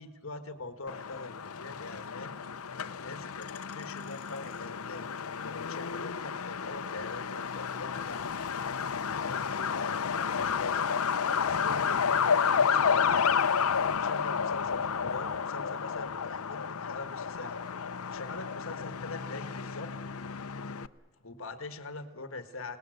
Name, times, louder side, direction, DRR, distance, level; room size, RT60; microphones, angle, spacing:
voice 1, 0.0-8.2 8.8-11.0 11.3-13.1 13.7-17.6 18.1-19.9 21.2-22.8, left 3 dB, 65° left, 9 dB, 1.6 m, -43 dB
Truck, 0.9-20.9, left 6 dB, 85° left, 0.8 m, -31 dB
28.5 x 19.0 x 7.9 m, 1.2 s
head